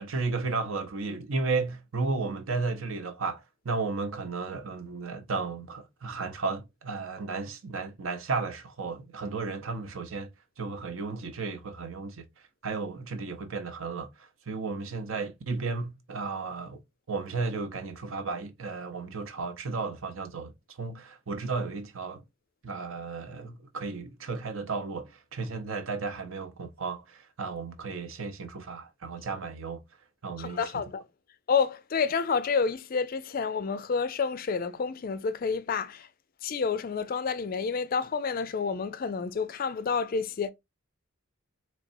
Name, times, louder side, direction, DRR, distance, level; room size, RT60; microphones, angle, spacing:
voice 1, 0.0-10.3 10.6-12.2 12.6-16.8 17.1-22.2 22.6-29.8 30.2-30.8, right 4 dB, 65° right, 0.7 m, -34 dB
voice 2, 30.4-31.0 31.5-36.1 36.4-40.5, left 5 dB, 40° left, 0.4 m, -29 dB
4.1 x 3.2 x 2.6 m
head